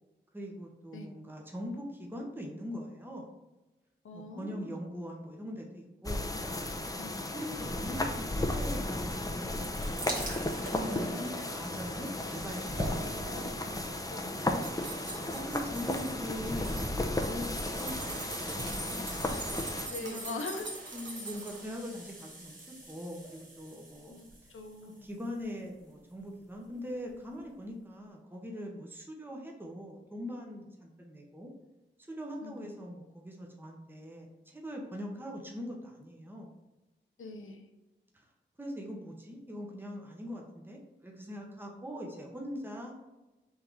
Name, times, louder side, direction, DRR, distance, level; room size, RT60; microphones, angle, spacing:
voice 1, 0.3-3.3 4.1-6.3 7.3-13.5 15.3-16.9 17.2-19.1 20.0-20.4 20.9-24.2 25.0-31.5 32.1-36.5 38.1-38.3 38.6-42.9, equal, 10° right, 0 dB, 0.9 m, -42 dB
voice 2, 4.0-4.7 6.9-7.3 10.9-11.4 12.1-12.3 14.1-14.6 19.9-20.7 24.1-25.1 32.4-32.7 37.2-37.7, left 3 dB, 85° left, 4 dB, 0.6 m, -43 dB
sound 1, 6.0-19.9, left 1 dB, 15° left, 0.6 m, -34 dB
sound 2, 9.5-26.3 27.1-27.2 27.4-27.5, right 2 dB, 45° right, 1.5 m, -47 dB
sound 3, 14.0-16.2 16.5-21.7 22.1-22.6 22.9-23.0, right 2 dB, 65° right, 1.2 m, -43 dB
3.7 x 2.9 x 4.6 m, 1.1 s
cardioid pair, 45°, 20 cm